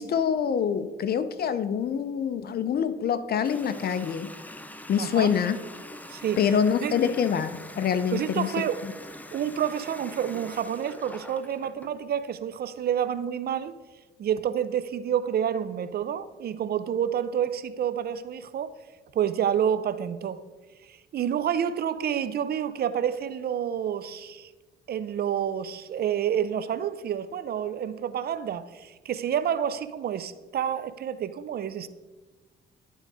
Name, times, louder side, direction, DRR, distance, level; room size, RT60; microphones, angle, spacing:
voice 1, 0.0-4.3 4.9-5.6 6.4-8.9, left 7 dB, 50° left, 0.6 m, -26 dB
Water tap faucet, 3.4-12.0, left 1 dB, 10° left, 0.5 m, -44 dB
voice 2, 4.9-5.3 6.1-6.5 6.8-6.9 8.1-8.8 9.3-13.8 14.2-18.7 19.1-20.4 20.9-24.5 24.9-31.9, right 9 dB, 50° right, 0.5 m, -29 dB
11.0 x 3.9 x 4.8 m
cardioid pair, 90°, 20 cm